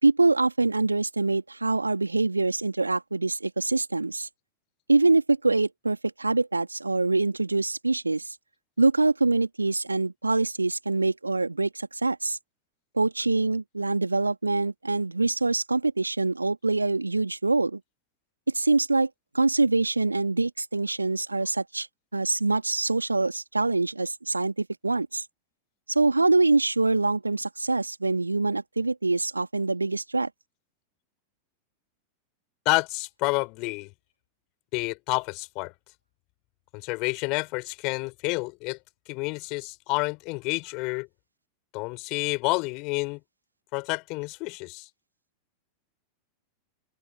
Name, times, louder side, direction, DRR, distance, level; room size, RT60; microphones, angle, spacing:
voice 1, 0.0-4.3 4.9-8.3 8.8-12.4 13.0-17.8 18.5-19.1 19.3-21.9 22.1-25.2 25.9-30.3, right 3 dB, 80° right, 2.9 m, -24 dB
voice 2, 32.6-33.9 34.7-35.7 36.7-38.8 39.1-41.1 41.7-43.2 43.7-44.9, left 28 dB, 45° left, 6.5 m, -29 dB
figure-of-eight pair, 90°, 0 cm